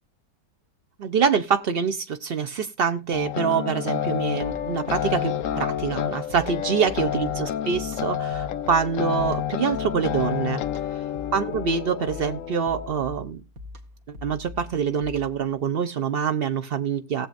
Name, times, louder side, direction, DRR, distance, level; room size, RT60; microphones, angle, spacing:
voice 1, 1.0-10.6 11.3-13.4 14.1-17.3, right 6 dB, 90° right, 9 dB, 0.5 m, -25 dB
sound 1, 3.1-12.9, left 10 dB, 60° left, 0.9 m, -29 dB
sound 2, 4.4-15.5, left 2 dB, 50° right, 1.9 m, -43 dB
18.5 x 7.3 x 2.5 m, 0.26 s
omnidirectional pair, 1.9 m